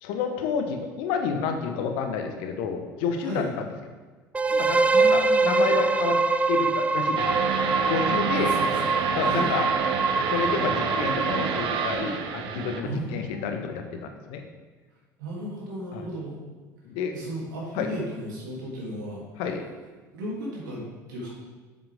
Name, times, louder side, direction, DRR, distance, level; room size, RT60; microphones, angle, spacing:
voice 1, 0.0-3.6 4.5-6.2 6.5-7.5 7.9-8.6 9.1-9.7 10.3-14.4 15.9-16.0 16.8-17.1 17.7-17.9 19.4-19.6, left 6 dB, 60° left, 5 dB, 1.0 m, -29 dB
sound 1, 4.3-12.1, right 3 dB, 15° right, 0.4 m, -24 dB
voice 2, 4.9-5.8 8.3-8.7 9.2-9.5 12.8-13.6 15.2-16.4 17.1-19.2 20.1-21.3, equal, 75° right, -5 dB, 2.7 m, -34 dB
sound 2, 7.2-12.8, right 6 dB, 55° right, 0.8 m, -28 dB
7.5 x 7.3 x 3.6 m, 1.3 s
hypercardioid pair, 65°, 10 cm